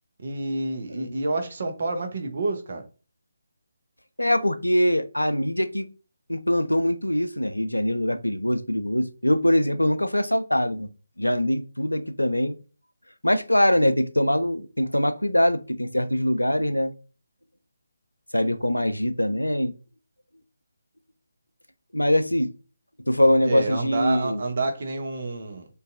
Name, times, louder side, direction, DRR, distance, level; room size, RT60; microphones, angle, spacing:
voice 1, 0.2-2.8 23.5-25.7, right 2 dB, 45° right, 0.6 m, -28 dB
voice 2, 4.2-5.9 6.3-10.9 11.2-12.6 13.2-16.9 18.3-19.7 21.9-22.5 23.1-24.4, left 1 dB, 85° left, 0.3 m, -23 dB
2.5 x 2.3 x 2.4 m
figure-of-eight pair, 150°, 0 cm